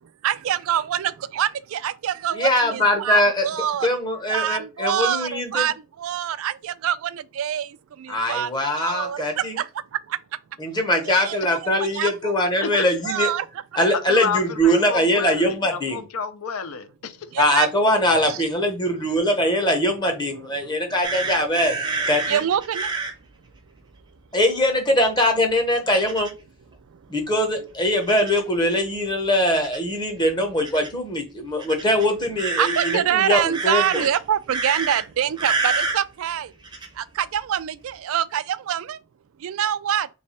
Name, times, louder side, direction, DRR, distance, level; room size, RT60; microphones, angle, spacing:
voice 1, 0.2-3.9 4.3-10.2 11.1-11.4 11.8-12.4 12.7-13.5 17.3-17.9 18.3-18.4 20.3-21.3 22.3-22.9 26.9-27.2 32.6-36.5 36.9-39.0 39.4-40.1, right 10 dB, 65° right, 0.3 m, -26 dB
voice 2, 2.3-3.5 3.8-5.7 8.1-9.6 10.6-13.3 13.8-16.0 17.4-21.8 22.1-22.4 24.3-26.3 27.1-34.0, left 1 dB, 20° left, 0.8 m, -22 dB
voice 3, 13.9-17.2, left 6 dB, 70° left, 0.5 m, -30 dB
sound 1, 21.0-23.1 26.0-26.3 28.0-28.5 29.5-29.8 30.6-30.9 31.6-33.0 33.5-34.2 34.5-35.0 35.4-36.0 36.6-36.9, right 3 dB, 20° right, 0.6 m, -28 dB
3.2 x 3.2 x 4.1 m
head